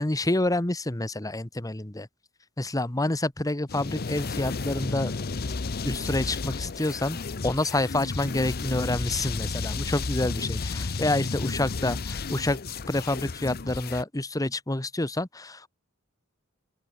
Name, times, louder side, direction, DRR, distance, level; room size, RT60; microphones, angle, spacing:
voice 1, 0.0-2.1 2.6-5.1 5.8-7.2 7.4-15.7, left 2 dB, 15° left, 1.2 m, -28 dB
sound 1, 3.7-14.0, left 4 dB, 50° left, 0.8 m, -32 dB
open air
head